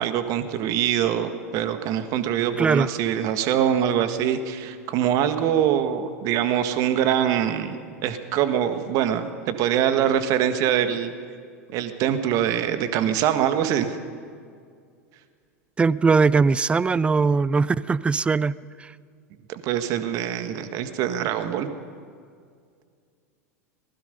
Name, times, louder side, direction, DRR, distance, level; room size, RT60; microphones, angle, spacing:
voice 1, 0.0-11.1 11.7-14.0 19.5-21.7, right 9 dB, 45° right, 9 dB, 1.7 m, -24 dB
voice 2, 15.8-18.9, right 4 dB, 15° right, 20 dB, 0.5 m, -20 dB
25.0 x 20.0 x 5.4 m, 2.1 s
figure-of-eight pair, 85°, 8 cm